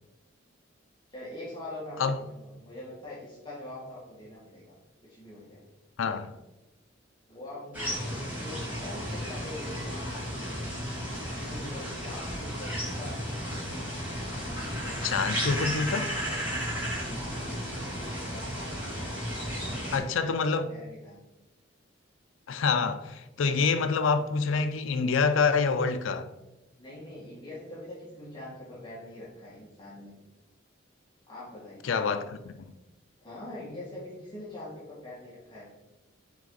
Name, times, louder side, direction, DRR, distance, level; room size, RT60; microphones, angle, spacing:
voice 1, 1.1-2.0 2.3-4.8 5.0-5.6 7.3-10.5 11.3-13.6 17.0-18.7 19.7-21.2 26.8-30.1 31.3-31.9 33.2-35.7, left 1 dB, 25° left, 1.7 m, -44 dB
voice 2, 6.0-6.3 15.0-16.1 19.9-20.7 22.5-26.3 31.8-32.7, left 5 dB, 75° left, 0.4 m, -27 dB
sound 1, 7.7-20.0, equal, 10° right, 2.1 m, -34 dB
6.1 x 4.2 x 3.9 m
head